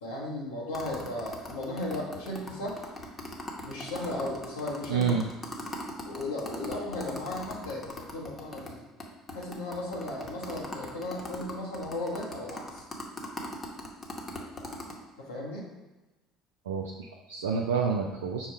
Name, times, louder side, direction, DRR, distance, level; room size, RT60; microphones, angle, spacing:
voice 1, 0.0-2.9 3.6-5.1 6.1-8.8 9.3-12.8 15.2-15.7, left 1 dB, 85° left, -5 dB, 0.8 m, -36 dB
sound 1, 0.7-8.7 9.0-9.1 9.3-14.9, left 2 dB, 30° left, 0.9 m, -39 dB
voice 2, 4.9-5.3 16.7-18.5, right 6 dB, 80° right, -1 dB, 0.3 m, -28 dB
5.4 x 2.2 x 4.4 m, 1.1 s
hypercardioid pair, 60°, 0 cm